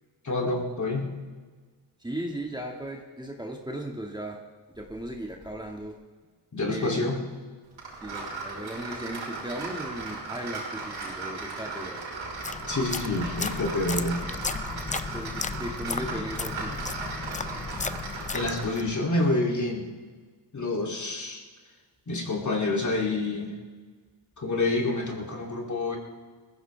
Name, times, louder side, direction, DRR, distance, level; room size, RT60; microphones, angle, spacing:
voice 1, 0.2-1.1 6.5-7.2 12.7-14.2 18.3-19.9 20.5-21.4 22.1-23.5 24.4-26.0, left 2 dB, 40° left, 1 dB, 3.0 m, -28 dB
voice 2, 2.0-4.4 4.8-5.9 6.7-7.1 8.0-12.0 15.1-16.8, right 1 dB, 10° right, 0 dB, 1.9 m, -36 dB
sound 1, 7.8-18.9, right 3 dB, 90° right, 4.6 m, -37 dB
sound 2, 12.2-18.9, left 4 dB, 15° left, 0.5 m, -35 dB
20.5 x 15.0 x 3.4 m, 1.5 s
cardioid pair, 90°, 45 cm